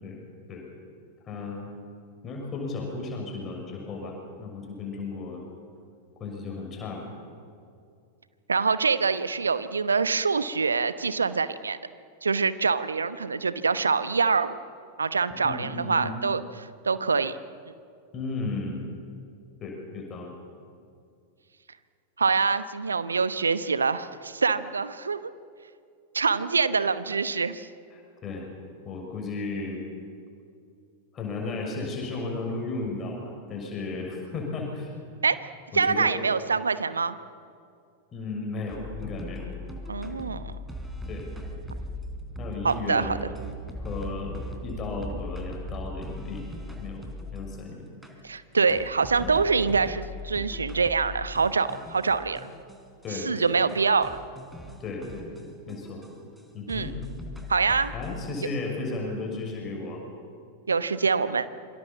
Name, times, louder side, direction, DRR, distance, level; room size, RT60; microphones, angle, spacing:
voice 1, 1.2-1.7 2.2-5.4 6.2-7.0 15.3-16.1 18.1-18.8 19.6-20.3 27.9-28.5 28.8-29.8 31.1-35.1 35.7-36.1 38.1-39.5 41.1-41.4 42.4-43.2 43.8-46.5 46.8-47.9 49.2-49.4 53.0-53.7 54.8-55.3 55.7-56.0 56.5-56.9 57.9-60.0, left 3 dB, 25° left, 0 dB, 6.5 m, -34 dB
voice 2, 8.5-11.8 12.2-14.6 15.0-17.4 22.2-25.3 26.1-27.7 35.2-35.4 35.7-37.2 39.9-40.5 42.6-43.2 48.2-52.5 53.1-54.1 56.7-56.9 57.5-57.9 60.7-61.5, right 5 dB, 75° right, 13 dB, 1.0 m, -25 dB
sound 1, 38.7-47.6 48.0-48.1 48.7-53.1 53.4-53.5 53.7-53.8 54.0-56.4 56.7-58.4, left 1 dB, 5° right, 4.0 m, -39 dB
27.0 x 24.5 x 7.3 m, 2.3 s
figure-of-eight pair, 90°, 0 cm